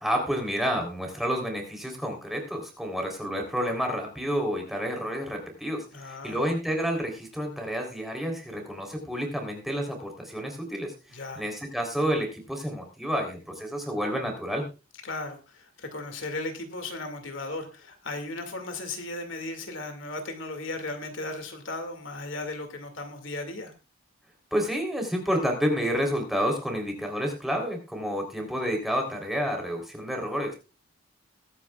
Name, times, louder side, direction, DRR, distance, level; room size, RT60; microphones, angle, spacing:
voice 1, 0.0-14.7 24.5-30.5, equal, ahead, 2 dB, 3.5 m, -29 dB
voice 2, 5.9-6.4 11.1-11.4 15.0-23.7, left 2 dB, 65° left, 6 dB, 2.3 m, -36 dB
21.5 x 9.9 x 2.4 m, 0.31 s
head